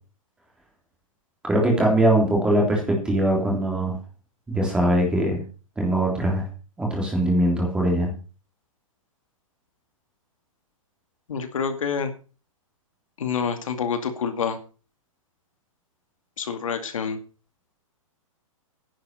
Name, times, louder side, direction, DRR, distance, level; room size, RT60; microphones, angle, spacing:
voice 1, 1.4-4.0 4.5-5.4 5.8-6.5 6.8-8.1, right 1 dB, 5° right, 0 dB, 3.2 m, -21 dB
voice 2, 11.3-12.1 13.2-14.6 16.4-17.2, left 6 dB, 75° left, 8 dB, 2.4 m, -27 dB
10.5 x 9.5 x 6.6 m, 0.36 s
hypercardioid pair, 175°, 18 cm